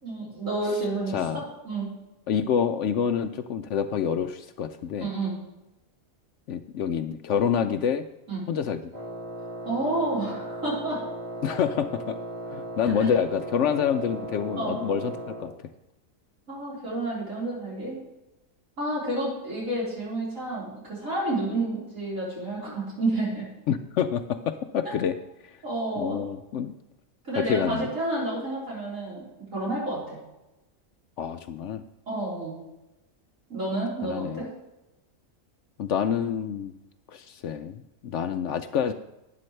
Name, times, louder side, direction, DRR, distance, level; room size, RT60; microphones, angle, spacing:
voice 1, 0.0-1.9 5.0-5.3 8.3-8.4 9.6-11.0 13.0-13.1 14.6-14.8 16.5-18.0 18.8-23.5 25.6-26.2 27.2-29.2 29.5-30.2 32.1-32.6 33.5-34.5, right 2 dB, 65° right, -7 dB, 4.8 m, -30 dB
voice 2, 1.1-1.5 2.3-5.1 6.5-8.0 8.5-8.8 11.4-12.2 12.5-15.5 23.7-25.2 25.4-25.6 26.0-26.7 27.3-27.9 31.2-31.8 34.0-34.4 35.8-36.7 37.1-38.9, left 8 dB, 70° left, 10 dB, 0.8 m, -27 dB
Wind instrument woodwind instrument, 8.9-15.6, right 1 dB, 30° right, 1.8 m, -37 dB
12.0 x 9.8 x 3.2 m, 0.96 s
omnidirectional pair, 1.5 m